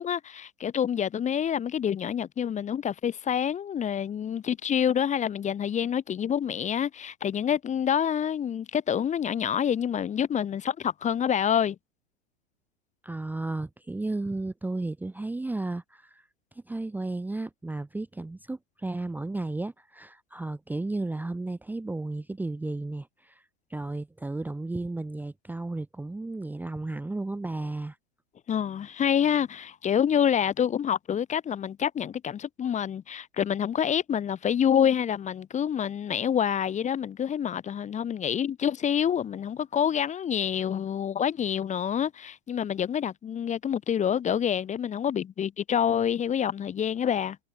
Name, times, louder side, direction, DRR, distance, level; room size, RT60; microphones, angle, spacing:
voice 1, 0.0-11.8 28.5-47.4, left 8 dB, 25° left, 1.3 m, -27 dB
voice 2, 13.0-16.3 16.5-23.4 23.7-28.0, right 2 dB, 5° right, 0.9 m, -33 dB
hypercardioid pair, 100°, 30 cm